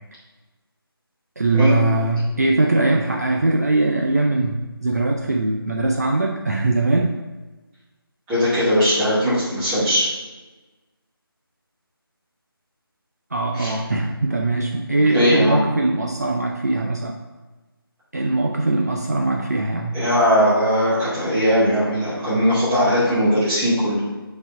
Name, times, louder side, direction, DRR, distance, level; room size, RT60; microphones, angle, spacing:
voice 1, 1.4-7.1 13.3-17.1 18.1-20.0, right 2 dB, 45° right, 1 dB, 0.4 m, -21 dB
voice 2, 8.3-10.1 13.5-13.7 15.1-15.6 19.9-24.0, equal, 5° right, -11 dB, 1.2 m, -19 dB
5.2 x 4.1 x 5.4 m, 1.2 s
figure-of-eight pair, 165°, 13 cm